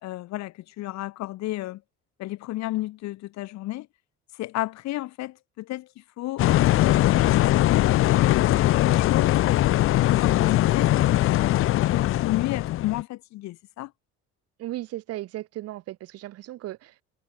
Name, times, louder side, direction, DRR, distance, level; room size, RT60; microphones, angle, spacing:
voice 1, 0.0-1.8 2.2-3.9 4.4-6.7 7.0-9.7 10.0-13.9, left 17 dB, 65° left, 1.5 m, -33 dB
sound 1, 6.4-13.0, left 15 dB, 45° left, 0.6 m, -21 dB
voice 2, 14.6-17.0, right 15 dB, 55° right, 0.9 m, -36 dB
cardioid pair, 160°, 30 cm